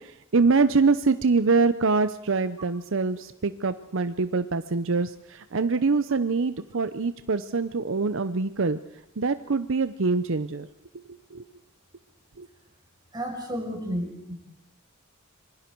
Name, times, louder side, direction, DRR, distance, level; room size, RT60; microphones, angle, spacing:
voice 1, 0.3-8.8 9.2-10.7 11.3-11.4 12.4-12.5, right 4 dB, 65° right, 12 dB, 0.7 m, -24 dB
voice 2, 13.1-14.3, equal, 20° right, 1 dB, 5.2 m, -32 dB
26.5 x 22.5 x 4.6 m, 0.78 s
head